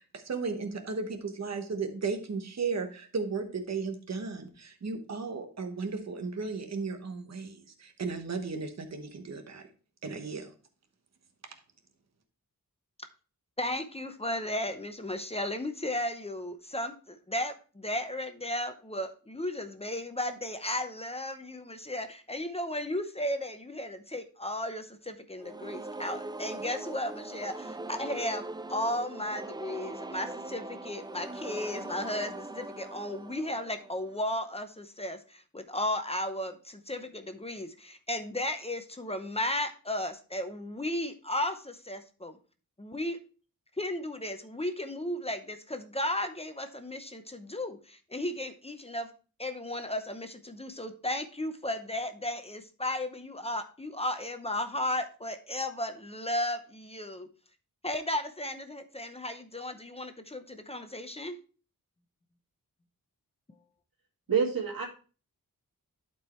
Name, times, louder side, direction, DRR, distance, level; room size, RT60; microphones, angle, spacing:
voice 1, 0.0-9.6 10.0-10.5, right 4 dB, 50° right, 6 dB, 1.1 m, -35 dB
voice 2, 13.6-28.4 28.7-42.4 42.8-43.2 43.8-49.1 49.4-57.3 57.8-61.4, left 1 dB, 20° left, 7 dB, 0.7 m, -35 dB
sound 1, 25.4-34.3, right 2 dB, 15° right, 0.3 m, -41 dB
voice 3, 64.3-64.9, right 6 dB, 85° right, 0 dB, 2.1 m, -27 dB
11.5 x 4.6 x 3.1 m, 0.36 s
wide cardioid pair, 130°, 34 cm